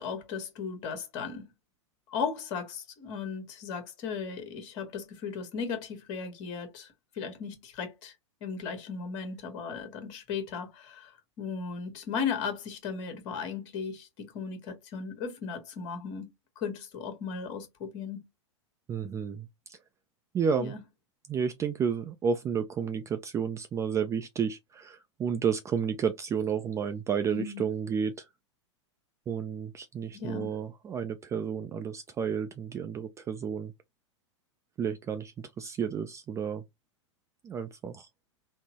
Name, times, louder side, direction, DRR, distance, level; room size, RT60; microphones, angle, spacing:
voice 1, 0.0-1.5 2.1-8.1 8.4-11.1 11.4-16.3 16.6-18.3 20.6-20.8 27.3-27.7 30.1-30.5, left 6 dB, 45° left, 1.3 m, -36 dB
voice 2, 18.9-19.8 20.3-20.7 21.3-28.2 29.3-33.7 34.8-36.6 37.4-38.1, right 7 dB, 20° right, 0.3 m, -31 dB
3.6 x 2.0 x 2.8 m
hypercardioid pair, 105°, 16 cm